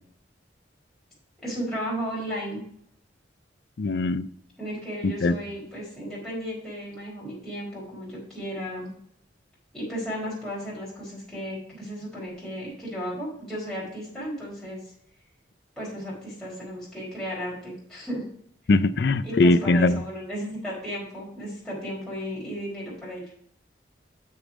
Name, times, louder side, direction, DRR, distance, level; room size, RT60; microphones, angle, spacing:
voice 1, 1.4-2.6 4.6-8.9 9.7-14.9 15.8-18.2 19.2-23.2, equal, ahead, 4.4 m, -34 dB
voice 2, 3.8-4.3 5.0-5.3 18.7-20.0, left 2 dB, 60° left, 0.4 m, -21 dB
7.3 x 6.7 x 5.0 m
head